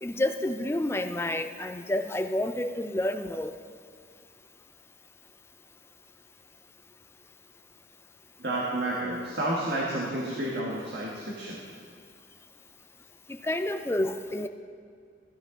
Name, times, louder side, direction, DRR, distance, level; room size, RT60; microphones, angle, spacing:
voice 1, 0.0-3.5 13.4-14.5, left 1 dB, 15° left, 8 dB, 0.4 m, -29 dB
voice 2, 8.4-11.6, right 1 dB, 65° right, -4 dB, 1.5 m, -30 dB
15.0 x 9.9 x 3.8 m, 2.2 s
head